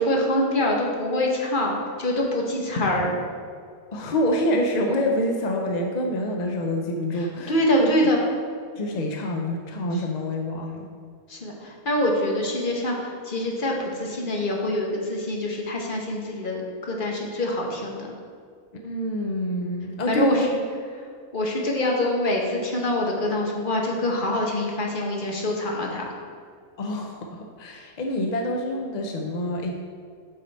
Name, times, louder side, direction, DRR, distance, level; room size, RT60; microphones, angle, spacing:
voice 1, 0.0-3.1 7.5-8.2 11.3-18.1 20.1-20.6 21.3-26.0, left 1 dB, 40° left, -1 dB, 1.2 m, -25 dB
voice 2, 3.9-7.5 7.8-7.9 8.8-10.9 18.8-20.5 26.8-29.7, left 1 dB, 55° left, 2 dB, 0.4 m, -26 dB
7.3 x 5.7 x 4.1 m, 2.1 s
omnidirectional pair, 1.6 m